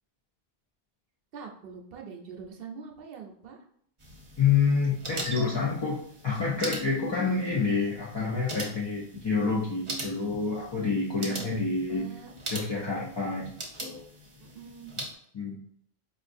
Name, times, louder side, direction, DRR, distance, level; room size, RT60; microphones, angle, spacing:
voice 1, 1.3-3.6 6.9-7.4 11.3-12.3 14.4-14.9, right 6 dB, 65° right, 2 dB, 0.8 m, -43 dB
sound 1, 4.0-15.1, right 1 dB, 35° right, 0.7 m, -41 dB
voice 2, 4.4-12.1 12.5-13.5 13.8-14.1 15.3-15.6, left 5 dB, 35° left, -5 dB, 0.4 m, -28 dB
4.5 x 2.5 x 2.5 m, 0.66 s
omnidirectional pair, 1.1 m